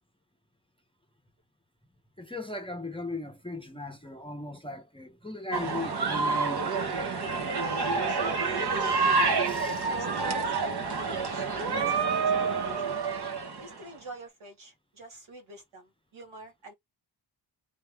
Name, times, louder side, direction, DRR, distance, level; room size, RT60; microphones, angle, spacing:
voice 1, 2.2-7.0 9.5-9.9, left 2 dB, 10° left, 0.8 m, -38 dB
sound 1, 5.5-13.8, right 4 dB, 55° right, 1.3 m, -28 dB
voice 2, 7.6-9.4 9.9-11.4 11.7-13.0 13.6-16.7, right 2 dB, 80° right, 2.0 m, -48 dB
3.7 x 3.0 x 3.5 m
wide cardioid pair, 125°, 47 cm